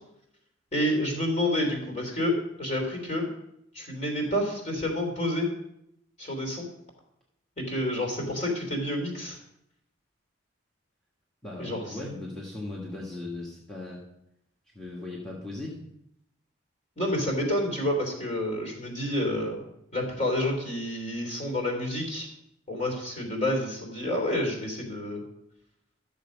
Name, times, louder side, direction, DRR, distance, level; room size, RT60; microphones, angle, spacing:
voice 1, 0.7-3.3 3.7-5.5 6.2-6.7 7.6-9.4 11.6-11.9 17.0-19.6 19.9-22.3 22.7-25.2, left 1 dB, 35° left, 1 dB, 3.4 m, -29 dB
voice 2, 11.4-14.0 14.7-15.8, left 2 dB, 5° left, -5 dB, 1.8 m, -38 dB
13.5 x 7.2 x 5.3 m, 0.80 s
head